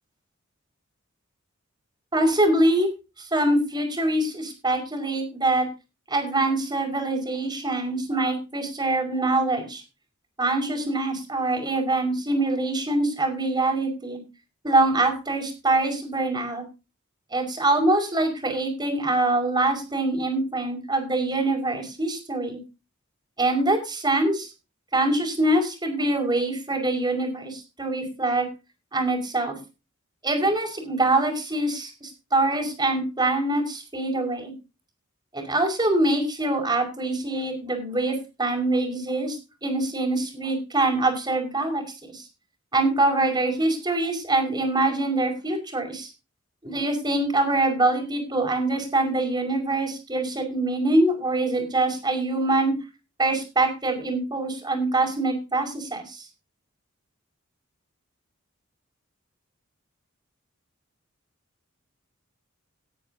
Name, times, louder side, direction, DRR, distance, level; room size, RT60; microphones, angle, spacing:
voice 1, 2.1-2.9 3.3-5.7 6.1-9.8 10.4-14.2 14.6-16.6 17.3-22.6 23.4-24.5 24.9-28.5 28.9-29.6 30.2-34.5 35.3-42.2 42.7-46.1 46.6-52.7 53.2-56.3, right 2 dB, 20° right, 4 dB, 5.4 m, -24 dB
19.5 x 10.0 x 2.8 m, 0.30 s
head